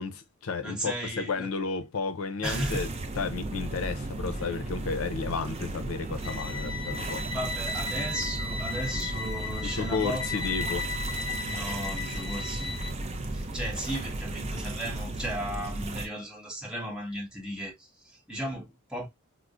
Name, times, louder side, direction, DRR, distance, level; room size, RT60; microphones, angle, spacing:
voice 1, 0.0-2.9 3.1-7.2 9.6-10.9, left 4 dB, 70° left, 0.5 m, -32 dB
voice 2, 0.6-1.5 2.4-2.9 7.3-10.5 11.5-12.9 13.3-19.1, equal, 5° right, 1.2 m, -36 dB
sound 1, 2.4-16.1, right 2 dB, 30° right, 0.5 m, -35 dB
sound 2, 6.2-12.9, left 3 dB, 25° left, 1.6 m, -35 dB
4.4 x 2.0 x 2.4 m
head